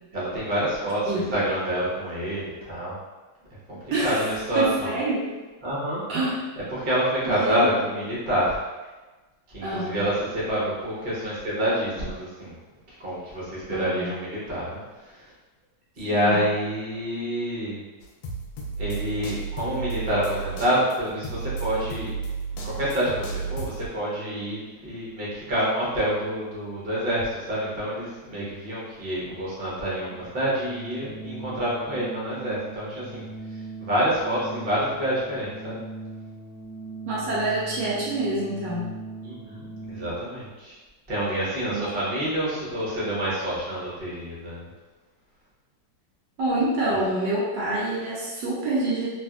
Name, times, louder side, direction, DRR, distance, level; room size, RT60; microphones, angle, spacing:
voice 1, 0.1-3.0 3.7-4.9 5.6-6.0 6.7-8.6 9.5-12.5 13.0-15.3 16.0-17.8 18.8-22.1 22.6-33.3 33.8-35.8 39.2-40.8 41.1-44.7, equal, 40° right, -7 dB, 0.9 m, -27 dB
voice 2, 1.0-1.4 3.9-4.3 4.6-5.3 6.1-6.4 7.2-7.7 9.6-10.0 13.7-14.1 16.1-16.4 37.1-38.9 41.7-41.9 46.4-49.1, right 2 dB, 75° right, -6 dB, 1.3 m, -27 dB
sound 1, 18.0-23.9, right 4 dB, 80° left, 1.2 m, -32 dB
Organ, 30.0-40.3, right 2 dB, 10° left, 1.1 m, -40 dB
3.3 x 2.6 x 2.4 m, 1.2 s
omnidirectional pair, 2.1 m